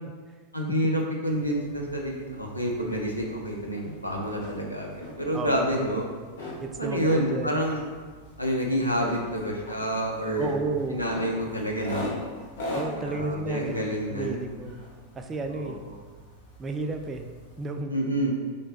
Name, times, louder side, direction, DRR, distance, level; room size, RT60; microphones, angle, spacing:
voice 1, 0.5-6.0 6.8-7.9 8.4-10.5 10.9-12.1 12.9-14.4 15.5-15.9 17.9-18.4, equal, 85° left, -1 dB, 0.6 m, -28 dB
sound 1, 1.3-17.8, left 1 dB, 55° left, 0.9 m, -41 dB
voice 2, 5.3-5.8 6.6-7.5 10.4-11.0 12.7-13.7 14.1-14.8 15.2-15.8 16.6-17.3 17.6-18.2, right 3 dB, 20° right, 5 dB, 0.3 m, -32 dB
3.2 x 3.0 x 4.1 m, 1.5 s
figure-of-eight pair, 90°, 0 cm